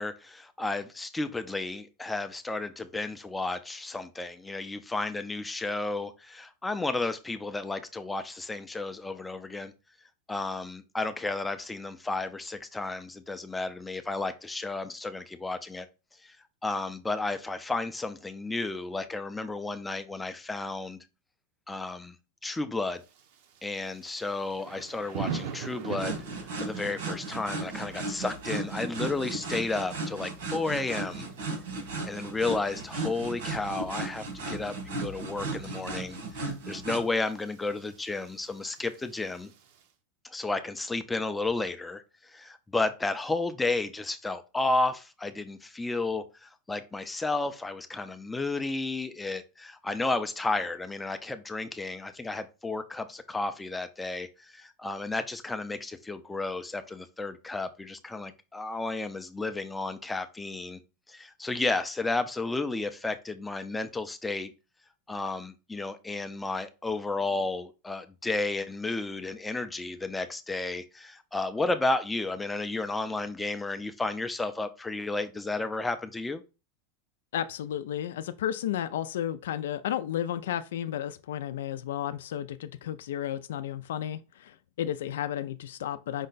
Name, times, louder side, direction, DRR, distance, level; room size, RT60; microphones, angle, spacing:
voice 1, 0.0-9.7 10.3-15.9 16.2-16.4 16.6-21.0 21.7-22.2 22.4-23.0 23.6-31.3 32.0-39.5 40.2-60.8 61.1-64.5 65.1-76.4, left 3 dB, 10° left, 0.4 m, -32 dB
Thunder / Rain, 23.0-39.9, right 7 dB, 60° right, 0.6 m, -45 dB
sound 1, 26.0-37.0, right 2 dB, 85° right, 1.6 m, -35 dB
voice 2, 77.3-86.3, left 10 dB, 85° left, 0.4 m, -33 dB
5.3 x 2.2 x 3.9 m
supercardioid pair, 150°, 0 cm